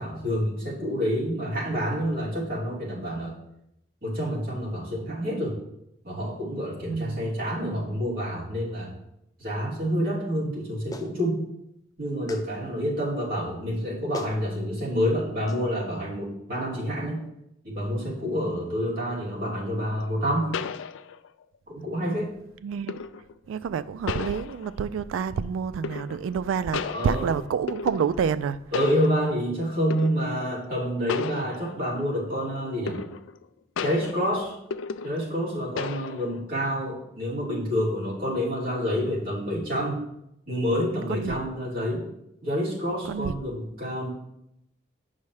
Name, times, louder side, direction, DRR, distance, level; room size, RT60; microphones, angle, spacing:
voice 1, 0.0-3.4 4.0-5.6 6.0-8.9 9.4-11.4 12.0-17.2 17.6-20.5 21.7-22.3 26.8-27.4 28.7-33.0 33.8-34.6 35.0-40.0 40.5-42.0 42.4-44.1, equal, 50° right, 3.0 m, -28 dB
voice 2, 6.9-7.3 22.6-23.0 23.5-28.6 41.1-41.4 43.0-43.3, right 6 dB, 85° right, 0.3 m, -28 dB
Clapping, 10.9-11.1 12.3-12.5 13.7-13.8 14.1-14.4 15.5-15.6, left 2 dB, 20° left, 0.6 m, -37 dB
sound 1, 19.9-20.0 20.5-21.4 22.9-23.3 24.1-25.0 25.8-26.4 26.7-28.4 28.7-29.5 29.9-30.4 31.1-32.0 32.9-33.5 33.8-35.4 35.8-36.4, left 6 dB, 75° left, 0.4 m, -35 dB
9.4 x 5.6 x 3.2 m
head